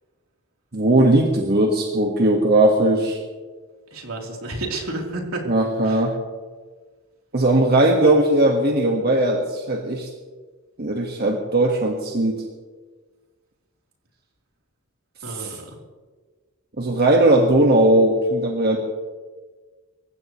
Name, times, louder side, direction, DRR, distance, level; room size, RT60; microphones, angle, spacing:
voice 1, 0.7-3.2 5.5-6.2 7.3-10.1 10.8-12.4 15.3-15.5 16.8-18.8, right 1 dB, 50° right, 0 dB, 1.7 m, -18 dB
voice 2, 3.9-5.4 5.8-6.1 15.2-15.8, right 2 dB, 80° right, -1 dB, 3.8 m, -31 dB
27.0 x 15.5 x 3.2 m, 1.4 s
head